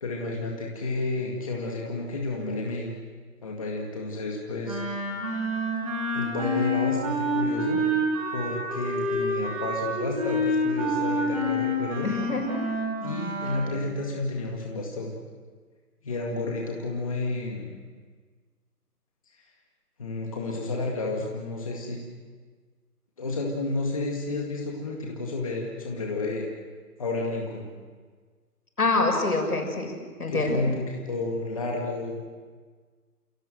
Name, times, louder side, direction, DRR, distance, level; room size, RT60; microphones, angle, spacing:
voice 1, 0.0-3.0 3.4-4.8 6.1-7.8 8.3-12.1 13.0-15.1 16.0-17.8 20.0-22.0 23.2-26.5 27.0-27.7 30.3-32.3, left 2 dB, 20° left, -1 dB, 2.0 m, -31 dB
Wind instrument woodwind instrument, 4.6-13.7, equal, 20° right, 5.6 m, -28 dB
voice 2, 12.0-12.6 28.8-29.9 30.2-30.6, left 2 dB, 65° left, 3 dB, 6.9 m, -25 dB
29.5 x 17.0 x 7.8 m, 1.5 s
figure-of-eight pair, 170°, 48 cm